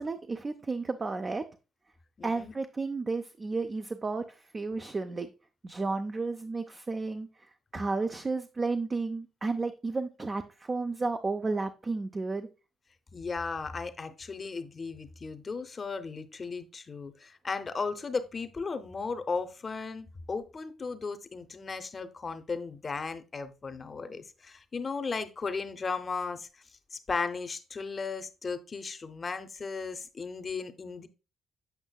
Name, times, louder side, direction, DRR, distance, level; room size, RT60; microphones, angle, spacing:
voice 1, 0.0-1.4 2.2-5.3 5.6-7.3 7.7-12.5, right 3 dB, 30° right, 0.4 m, -32 dB
voice 2, 2.2-2.5 13.1-26.5 26.9-31.1, left 4 dB, 35° left, 0.6 m, -36 dB
8.0 x 5.4 x 2.3 m
cardioid pair, 90°, 0 cm